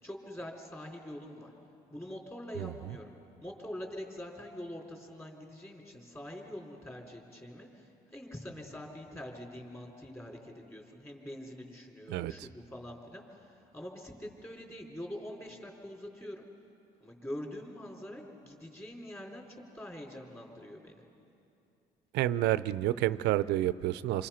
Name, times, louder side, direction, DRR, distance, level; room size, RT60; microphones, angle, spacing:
voice 1, 0.0-1.5 1.9-3.1 3.4-16.4 17.0-21.0, left 1 dB, 15° left, 0 dB, 3.9 m, -44 dB
voice 2, 2.6-3.0 12.1-12.5 22.1-24.3, right 14 dB, 85° right, 15 dB, 0.6 m, -30 dB
28.5 x 24.5 x 5.8 m, 2.7 s
cardioid pair, 110°, 17 cm